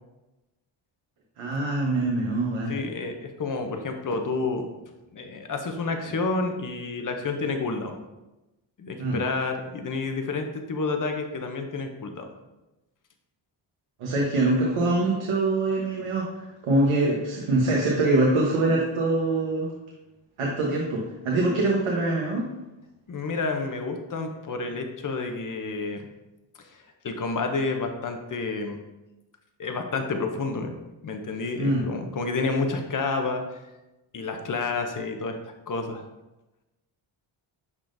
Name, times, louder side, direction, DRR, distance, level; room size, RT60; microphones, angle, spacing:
voice 1, 1.4-2.8 9.0-9.2 14.0-16.3 16.6-19.7 20.4-22.5 31.6-31.8, right 2 dB, 85° right, -2 dB, 1.1 m, -24 dB
voice 2, 2.7-4.7 5.1-8.0 8.8-12.3 23.1-26.1 26.6-28.8 29.6-30.7 31.0-33.4 34.1-35.4 35.7-36.0, left 3 dB, 40° left, 5 dB, 0.6 m, -29 dB
10.5 x 3.7 x 2.6 m, 1.0 s
wide cardioid pair, 155°, 49 cm